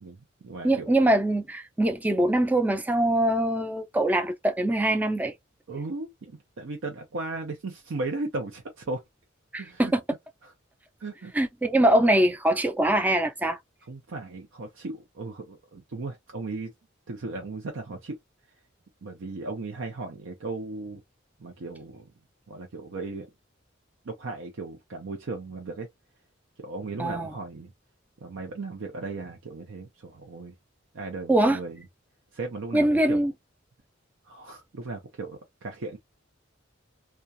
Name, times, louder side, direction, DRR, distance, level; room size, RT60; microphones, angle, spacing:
voice 1, 0.0-0.9 5.7-9.0 9.6-9.9 10.4-10.5 11.0-11.3 13.9-16.7 17.1-18.2 19.0-21.0 21.4-22.1 22.5-23.3 24.0-25.9 26.6-27.7 28.2-30.5 30.9-31.8 32.3-33.2 34.2-36.0, right 3 dB, 80° right, 0.6 m, -36 dB
voice 2, 0.6-5.3 9.5-10.0 11.3-13.6 27.0-27.3 31.3-31.6 32.7-33.3, right 1 dB, 10° right, 0.4 m, -23 dB
2.3 x 2.2 x 2.6 m
head